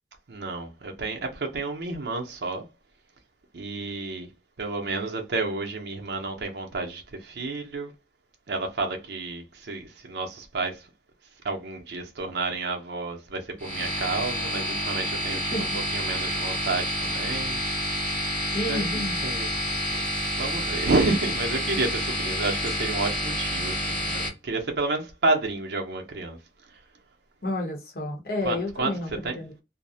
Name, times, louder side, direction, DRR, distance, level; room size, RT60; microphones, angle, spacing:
voice 1, 0.3-2.7 3.5-4.3 4.6-7.9 8.5-10.9 11.4-18.3 18.7-20.0 20.4-26.4 28.4-29.4, right 3 dB, 70° right, 0.6 m, -30 dB
sound 1, 13.6-24.3, equal, 10° left, 0.7 m, -29 dB
voice 2, 15.3-15.6 18.5-19.2 27.4-29.5, left 1 dB, 55° left, 0.9 m, -31 dB
2.5 x 2.0 x 2.6 m
head